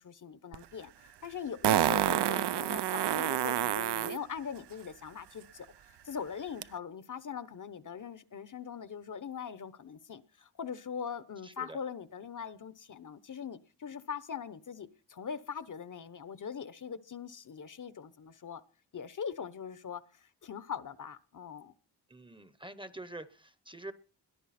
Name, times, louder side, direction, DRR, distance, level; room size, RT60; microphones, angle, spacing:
voice 1, 0.0-18.6 18.9-21.7, left 7 dB, 50° left, 1.0 m, -41 dB
Fart, 0.5-0.6 1.6-4.2 6.6-6.7, right 11 dB, 80° right, 0.7 m, -28 dB
voice 2, 11.4-11.8 22.1-23.9, right 2 dB, 10° right, 0.9 m, -46 dB
21.5 x 14.5 x 4.3 m
wide cardioid pair, 160°, 41 cm